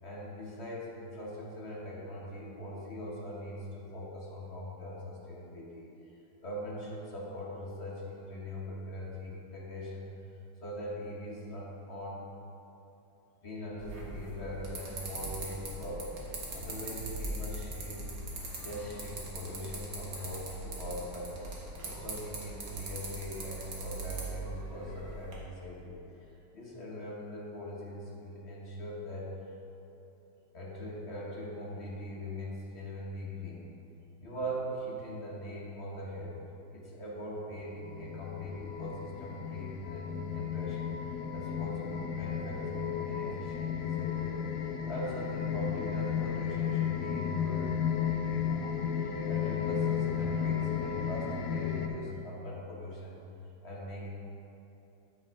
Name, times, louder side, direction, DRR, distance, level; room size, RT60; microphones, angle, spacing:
voice 1, 0.0-5.9 6.4-10.1 10.6-12.2 13.4-18.0 18.6-29.4 30.5-33.7 34.2-36.4 36.7-40.9 41.3-44.4 44.9-53.2 53.6-54.1, equal, 40° left, -4 dB, 1.2 m, -41 dB
sound 1, 13.8-25.4, right 2 dB, 55° right, 1.8 m, -41 dB
sound 2, 37.6-51.9, left 8 dB, 75° left, 0.8 m, -33 dB
9.6 x 5.3 x 4.7 m, 3.0 s
omnidirectional pair, 2.3 m